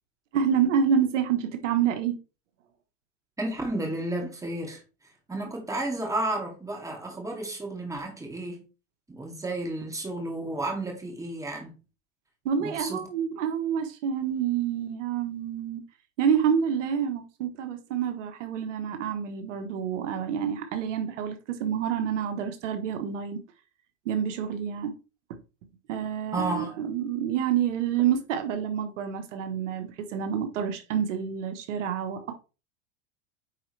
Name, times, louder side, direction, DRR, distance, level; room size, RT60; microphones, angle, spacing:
voice 1, 0.3-2.2 12.4-15.8 16.2-23.4 24.0-24.9 25.9-32.3, right 8 dB, 80° right, 1.5 m, -28 dB
voice 2, 3.4-4.8 5.3-8.6 9.1-11.7 12.6-13.1 26.3-26.7, right 2 dB, 10° right, 2.5 m, -32 dB
9.3 x 4.4 x 3.4 m
supercardioid pair, 120°, 36 cm